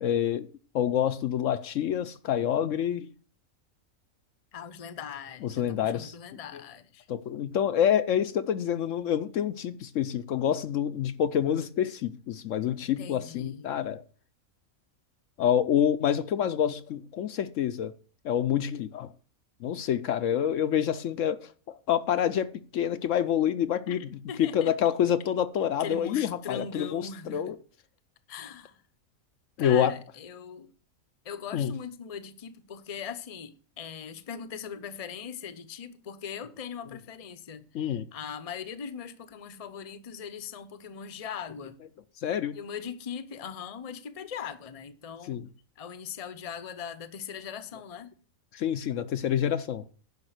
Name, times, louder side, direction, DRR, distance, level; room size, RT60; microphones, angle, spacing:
voice 1, 0.0-0.5 0.7-3.1 5.4-6.1 6.5-6.6 7.1-14.0 15.4-17.9 18.2-19.1 19.6-27.6 29.6-29.9 31.5-31.7 37.7-38.1 42.2-42.6 45.2-45.5 48.5-49.8, left 9 dB, 70° left, 0.9 m, -27 dB
voice 2, 4.5-7.1 13.0-13.7 23.9-24.0 24.3-24.7 25.8-27.5 28.3-28.8 29.6-30.7 31.2-41.8 42.5-45.4 45.8-48.1, left 7 dB, 35° left, 0.7 m, -40 dB
10.5 x 5.2 x 8.0 m
omnidirectional pair, 1.5 m